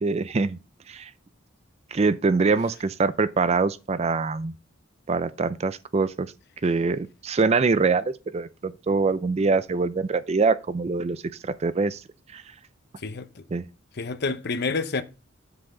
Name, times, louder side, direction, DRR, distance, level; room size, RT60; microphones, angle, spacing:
voice 1, 0.0-0.6 0.9-1.1 1.9-4.5 5.1-6.3 6.6-8.0 8.3-12.0 12.3-12.4 13.5-13.6, right 4 dB, 30° right, 0.4 m, -24 dB
voice 2, 13.0-13.4 13.9-15.0, left 4 dB, 55° left, 0.7 m, -28 dB
7.8 x 5.8 x 3.7 m
head